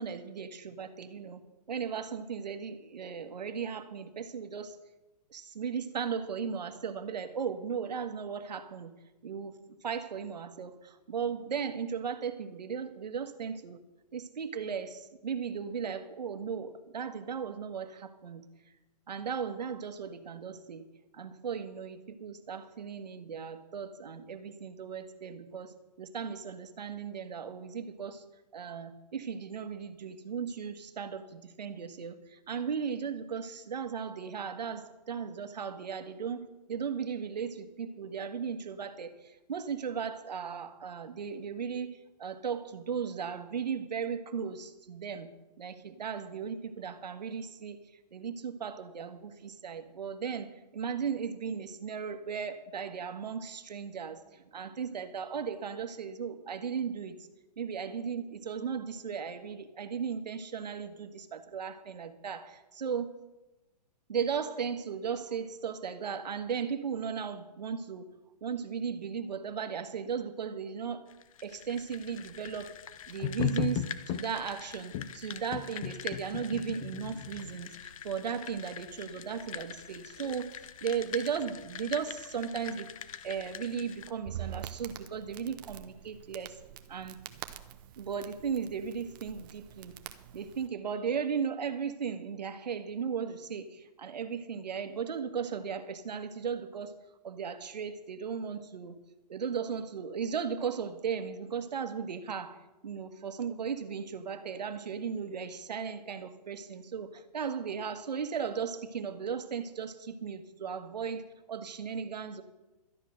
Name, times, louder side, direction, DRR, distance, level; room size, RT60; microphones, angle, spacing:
voice 1, 0.0-1.4 1.7-4.8 5.3-8.9 9.2-13.8 14.1-18.4 19.1-20.9 21.1-28.2 28.5-45.3 45.6-47.8 48.1-57.3 57.6-63.1 64.1-68.1 68.4-71.1 71.4-72.7 73.1-82.9 83.2-86.6 86.9-87.2 88.0-89.9 90.3-96.9 97.2-98.9 99.3-111.2 111.5-112.4, right 6 dB, 90° right, 8 dB, 1.5 m, -36 dB
sound 1, 71.1-84.1, left 9 dB, 55° left, 0.9 m, -45 dB
sound 2, 73.2-74.3 74.9-75.1 75.5-77.6, left 9 dB, 20° left, 0.4 m, -34 dB
Crackle, 84.0-90.7, right 11 dB, 30° right, 0.8 m, -46 dB
13.0 x 10.0 x 6.4 m, 1.0 s
hypercardioid pair, 160°, 21 cm